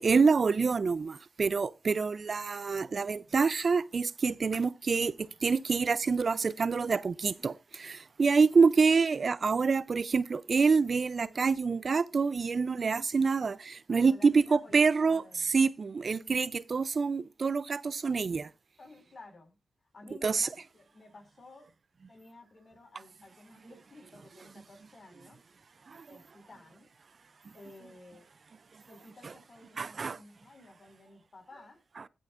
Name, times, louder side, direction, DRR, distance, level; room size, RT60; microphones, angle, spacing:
voice 1, 0.0-18.5 20.2-20.5 25.9-26.0 29.8-30.2, right 5 dB, 55° right, 0.5 m, -27 dB
voice 2, 13.9-15.5 18.8-19.6 19.9-21.7 22.1-25.4 26.1-26.9 27.5-28.3 28.9-31.8, left 2 dB, 55° left, 5.0 m, -54 dB
18.5 x 6.3 x 2.5 m
cardioid pair, 50°, 0 cm